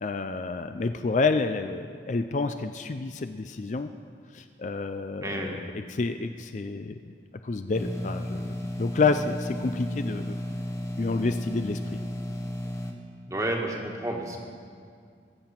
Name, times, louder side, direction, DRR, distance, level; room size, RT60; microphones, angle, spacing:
voice 1, 0.0-3.9 4.3-7.1 7.4-10.4 11.0-12.0, left 4 dB, 40° left, 9 dB, 0.4 m, -29 dB
voice 2, 5.2-5.6 13.3-14.4, right 1 dB, 20° right, 1 dB, 1.5 m, -31 dB
sound 1, 7.7-12.9, left 1 dB, 15° left, 1.0 m, -33 dB
21.5 x 7.7 x 5.8 m, 2.2 s
head